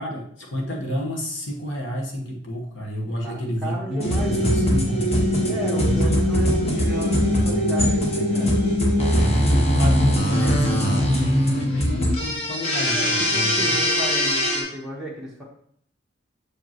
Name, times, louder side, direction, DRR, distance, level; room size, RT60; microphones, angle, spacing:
voice 1, 0.0-5.1 5.8-6.2 9.1-13.8, equal, 65° left, -1 dB, 1.4 m, -30 dB
voice 2, 3.2-4.5 5.5-8.6 12.9-15.4, right 1 dB, 5° right, -5 dB, 1.3 m, -34 dB
sound 1, 4.0-14.6, equal, 30° left, 1.0 m, -21 dB
6.7 x 4.9 x 3.1 m, 0.64 s
head